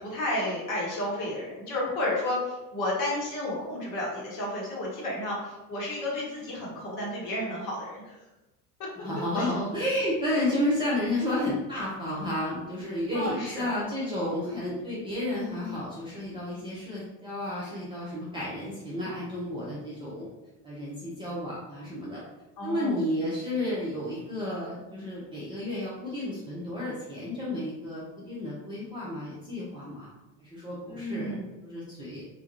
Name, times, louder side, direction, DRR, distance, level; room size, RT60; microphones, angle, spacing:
voice 1, 0.0-8.2 9.3-9.5 10.4-10.6 13.1-13.7 22.6-23.0 30.9-31.4, left 1 dB, 40° left, -4 dB, 1.0 m, -32 dB
voice 2, 9.0-20.3 20.6-22.2 22.6-30.1 30.4-32.3, left 1 dB, 10° right, -8 dB, 0.4 m, -32 dB
2.3 x 2.1 x 2.7 m, 1.0 s
figure-of-eight pair, 65°, 46 cm